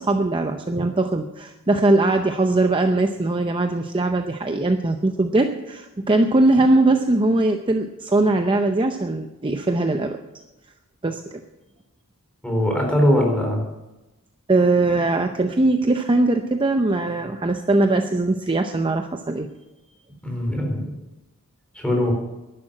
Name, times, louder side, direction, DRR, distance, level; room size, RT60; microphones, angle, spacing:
voice 1, 0.0-10.2 11.0-11.4 14.5-19.5, right 2 dB, 20° right, 6 dB, 0.6 m, -20 dB
voice 2, 12.4-13.6 20.2-20.9 21.8-22.1, left 1 dB, 5° left, 0 dB, 4.1 m, -21 dB
11.5 x 11.0 x 7.6 m, 1.0 s
head